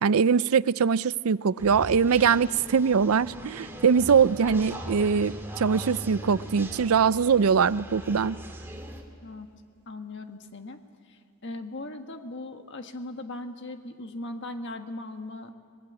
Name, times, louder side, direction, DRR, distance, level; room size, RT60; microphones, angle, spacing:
voice 1, 0.0-8.4, right 6 dB, 80° right, 18 dB, 0.5 m, -22 dB
sound 1, 1.6-9.0, right 1 dB, 10° right, 2.4 m, -40 dB
voice 2, 9.9-10.8 11.1-15.5, left 2 dB, 55° left, 6 dB, 1.6 m, -38 dB
24.0 x 20.0 x 8.4 m, 2.4 s
head